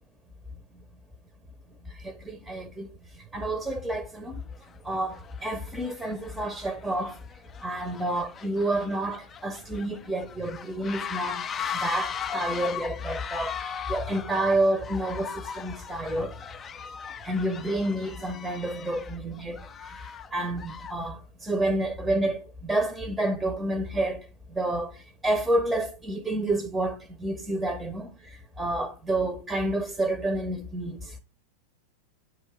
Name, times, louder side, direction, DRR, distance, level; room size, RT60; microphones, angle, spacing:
voice 1, 1.9-2.9 3.1-4.4 4.8-7.2 7.6-11.5 11.7-16.4 17.2-31.1, right 1 dB, 5° right, 0.7 m, -29 dB
sound 1, 3.7-3.8 4.5-4.8 5.1-21.1, left 7 dB, 25° left, 0.4 m, -38 dB
7.7 x 2.7 x 4.5 m
figure-of-eight pair, 90°, 0 cm